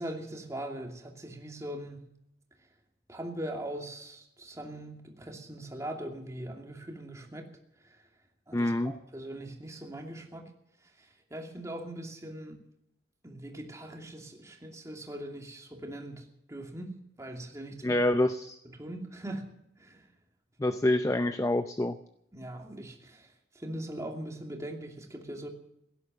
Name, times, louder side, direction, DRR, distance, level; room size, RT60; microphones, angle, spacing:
voice 1, 0.0-2.1 3.1-7.5 7.8-8.1 8.5-10.5 10.8-12.6 13.2-18.0 18.6-20.1 22.3-25.5, right 1 dB, 20° right, 1 dB, 2.7 m, -41 dB
voice 2, 8.5-8.9 17.8-18.6 20.6-22.0, left 1 dB, 20° left, 10 dB, 0.6 m, -27 dB
17.0 x 11.0 x 7.5 m, 0.79 s
head